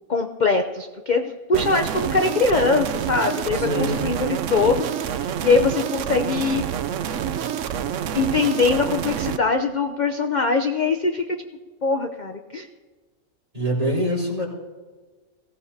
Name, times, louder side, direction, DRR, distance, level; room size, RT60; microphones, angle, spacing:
voice 1, 0.1-6.6 8.1-11.2 11.8-12.7, left 4 dB, 45° left, 5 dB, 0.6 m, -22 dB
sound 1, 1.5-9.4, right 9 dB, 65° right, 0.9 m, -27 dB
voice 2, 3.5-4.1 13.5-14.4, right 1 dB, 25° right, -4 dB, 4.0 m, -24 dB
22.5 x 16.5 x 2.8 m, 1.4 s
omnidirectional pair, 1.6 m